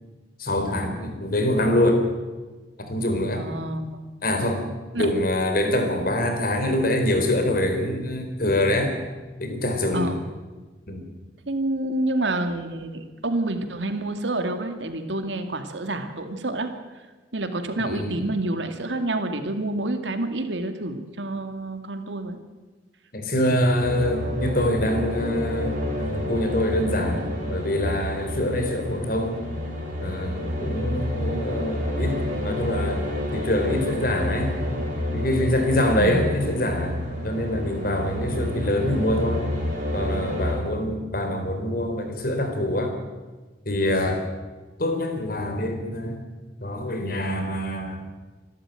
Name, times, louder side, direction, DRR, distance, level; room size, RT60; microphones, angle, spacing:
voice 1, 0.4-2.0 2.8-3.5 4.2-4.6 5.0-8.9 9.4-10.1 10.9-11.0 17.8-18.3 23.1-29.4 30.0-34.6 35.1-37.0 37.2-39.4 39.9-42.9 43.6-44.3 44.8-46.2 46.6-48.0, left 1 dB, 55° left, 5 dB, 4.1 m, -25 dB
voice 2, 3.4-4.0 4.9-5.1 9.9-10.2 11.5-16.7 17.3-22.4 36.0-36.2, right 2 dB, 85° right, 7 dB, 2.3 m, -28 dB
sound 1, 23.8-40.5, left 1 dB, 45° right, 6.0 m, -29 dB
26.0 x 12.5 x 9.1 m, 1.3 s
head